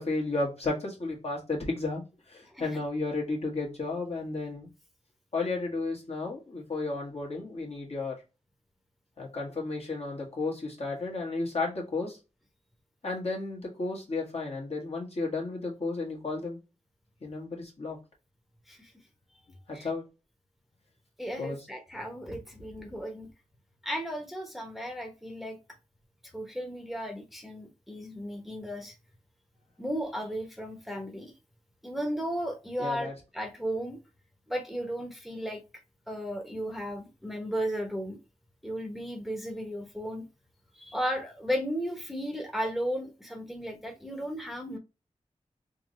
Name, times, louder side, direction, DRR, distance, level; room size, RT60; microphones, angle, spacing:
voice 1, 0.0-2.0 2.3-4.7 5.3-8.2 9.2-12.2 13.0-16.6 17.2-18.0 19.7-20.0 21.4-21.7 32.8-33.1, left 3 dB, 55° left, 1.7 m, -33 dB
voice 2, 2.5-2.8 18.7-18.9 19.7-19.9 21.2-23.3 23.8-25.6 26.3-28.9 29.8-31.3 31.8-34.0 34.5-35.6 36.1-38.2 38.6-40.2 40.7-44.8, equal, ahead, 1.0 m, -35 dB
3.6 x 2.7 x 3.1 m
cardioid pair, 55°, 13 cm